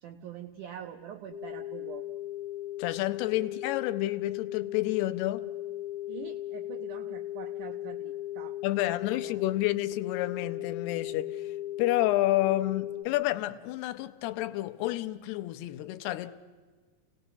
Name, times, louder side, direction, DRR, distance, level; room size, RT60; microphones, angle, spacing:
voice 1, 0.0-2.1 6.1-8.6 8.9-9.4, right 9 dB, 85° right, 1.8 m, -45 dB
sound 1, 1.3-13.0, left 14 dB, 65° left, 2.7 m, -37 dB
voice 2, 2.8-5.5 8.6-11.5 11.8-16.4, left 16 dB, 90° left, 2.8 m, -30 dB
29.0 x 18.0 x 5.5 m
omnidirectional pair, 4.6 m